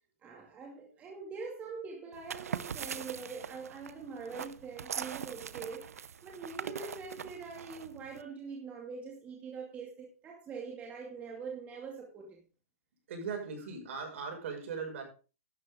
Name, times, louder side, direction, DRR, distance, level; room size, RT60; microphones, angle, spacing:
voice 1, 0.2-12.4, right 5 dB, 20° right, 0 dB, 2.3 m, -44 dB
sound 1, 2.1-8.2, right 7 dB, 90° right, 0.8 m, -42 dB
voice 2, 13.1-15.0, right 5 dB, 60° right, 2 dB, 6.2 m, -39 dB
12.0 x 11.0 x 3.7 m, 0.35 s
hypercardioid pair, 150°, 8 cm